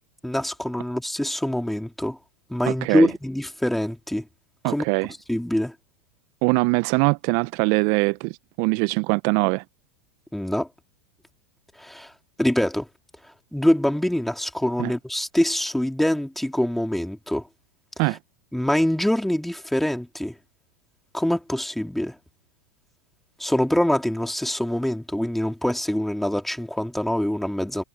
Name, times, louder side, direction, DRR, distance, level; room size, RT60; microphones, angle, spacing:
voice 1, 0.2-2.2 2.5-4.2 4.6-4.8 5.3-5.7 10.3-10.7 11.8-12.1 12.4-12.9 13.5-17.4 18.0-18.1 18.5-20.3 21.1-22.1 23.4-27.8, left 1 dB, ahead, 3.3 m, -24 dB
voice 2, 2.7-3.1 4.6-5.1 6.4-9.6 14.8-14.9 18.0-18.2, right 30 dB, 50° right, 0.9 m, -22 dB
hypercardioid pair, 95°, 8 cm